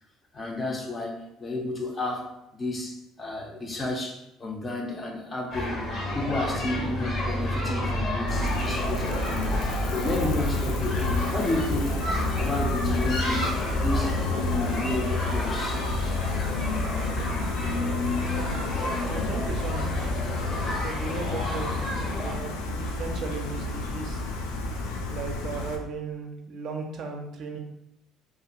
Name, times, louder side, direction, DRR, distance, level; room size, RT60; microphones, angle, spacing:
voice 1, 0.3-5.9 6.1-12.1 12.3-14.2 14.5-15.9, left 2 dB, 25° left, 0 dB, 0.5 m, -32 dB
sound 1, 5.5-22.3, left 1 dB, 50° left, 0.9 m, -31 dB
Gull seagull, 8.3-25.8, left 2 dB, 90° left, 0.4 m, -30 dB
voice 2, 19.0-20.6 20.8-24.2 25.1-27.6, right 4 dB, 55° right, 3 dB, 0.4 m, -37 dB
2.5 x 2.3 x 2.8 m, 0.87 s
supercardioid pair, 100°, 0 cm